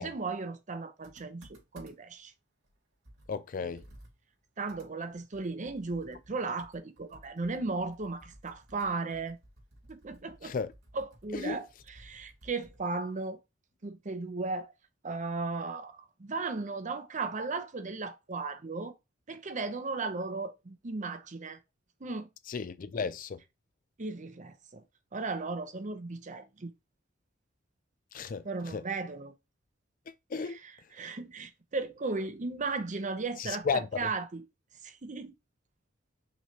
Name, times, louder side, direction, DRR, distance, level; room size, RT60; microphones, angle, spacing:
voice 1, 0.0-2.3 3.6-3.8 4.6-9.4 9.9-10.5 10.9-13.4 13.8-14.7 15.0-18.9 19.3-21.6 22.0-22.3 24.0-24.8 25.1-26.7 28.4-29.3 30.4-34.4 34.8-35.3, right 3 dB, 40° right, 0.7 m, -36 dB
Computer keyboard, 1.0-2.2 2.6-2.7 3.0-12.9, right 1 dB, 75° right, 2.5 m, -57 dB
voice 2, 3.3-3.8 10.4-10.7 11.3-11.6 22.5-23.4 28.1-28.8 30.1-30.6 33.4-34.1, left 5 dB, 45° left, 0.4 m, -34 dB
5.7 x 3.2 x 2.8 m
head